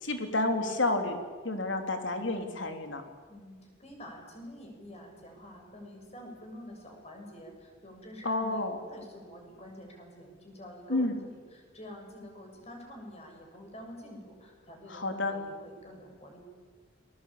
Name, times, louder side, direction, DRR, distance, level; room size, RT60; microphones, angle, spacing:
voice 1, 0.0-1.2 1.4-3.0 8.2-8.8 10.9-11.1 14.9-15.4, left 2 dB, 75° left, 5 dB, 3.4 m, -30 dB
voice 2, 3.3-16.4, equal, 35° left, 2 dB, 6.8 m, -47 dB
29.5 x 21.0 x 8.7 m, 1.5 s
head